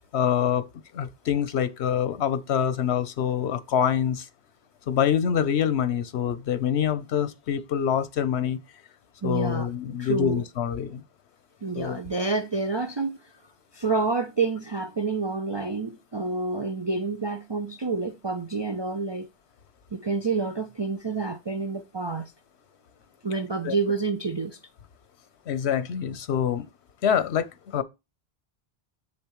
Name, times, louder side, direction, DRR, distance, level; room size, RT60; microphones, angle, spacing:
voice 1, 0.1-0.7 0.9-4.3 4.9-8.6 9.2-11.0 11.7-12.0 23.6-23.7 25.5-26.7 27.0-27.5 27.7-27.8, left 8 dB, 85° left, 1.0 m, -25 dB
voice 2, 9.2-9.7 10.0-10.4 11.6-13.2 13.7-19.3 19.9-22.3 23.2-24.6, right 4 dB, 35° right, 0.5 m, -28 dB
7.7 x 7.0 x 3.0 m
omnidirectional pair, 1.1 m